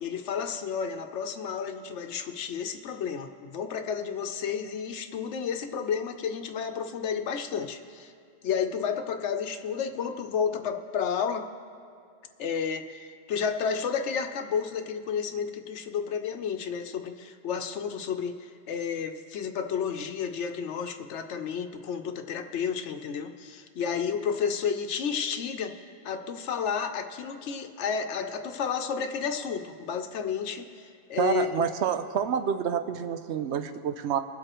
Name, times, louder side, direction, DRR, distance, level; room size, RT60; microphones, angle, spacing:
voice 1, 0.0-8.1 8.4-11.4 12.4-31.7, left 7 dB, 90° left, 7 dB, 1.0 m, -31 dB
voice 2, 31.2-34.2, right 8 dB, 75° right, 9 dB, 0.9 m, -28 dB
22.5 x 7.9 x 3.0 m, 2.4 s
omnidirectional pair, 1.1 m